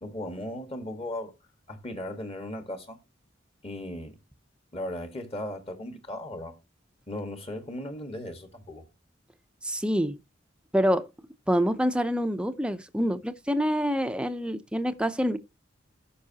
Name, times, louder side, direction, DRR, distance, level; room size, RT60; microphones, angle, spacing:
voice 1, 0.0-1.3 1.7-3.0 3.6-4.2 4.7-6.6 7.1-8.8, left 1 dB, 30° left, 1.4 m, -37 dB
voice 2, 9.6-10.2 10.7-11.1 11.5-15.4, equal, 5° right, 0.5 m, -26 dB
14.5 x 5.4 x 2.8 m
head